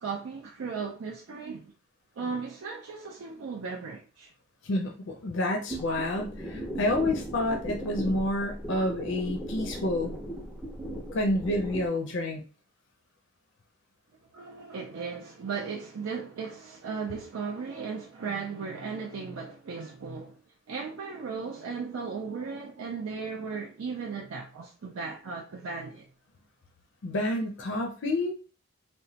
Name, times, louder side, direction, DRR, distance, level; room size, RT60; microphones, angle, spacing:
voice 1, 0.0-1.7 2.2-4.3 14.3-20.4 20.7-26.1, right 5 dB, 70° right, 0.4 m, -36 dB
voice 2, 4.6-10.2 11.1-12.4 27.0-28.3, left 1 dB, 55° left, 0.5 m, -29 dB
sound 1, 5.7-11.9, equal, ahead, 0.5 m, -37 dB
3.0 x 2.1 x 2.7 m
head